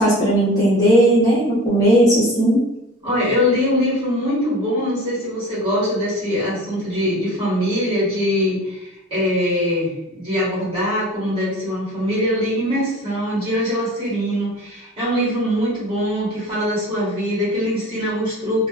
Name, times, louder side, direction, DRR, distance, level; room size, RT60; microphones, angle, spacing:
voice 1, 0.0-2.6, right 1 dB, 15° left, -10 dB, 0.7 m, -16 dB
voice 2, 3.0-18.7, equal, 25° right, -9 dB, 1.4 m, -22 dB
2.6 x 2.1 x 2.4 m, 0.88 s
head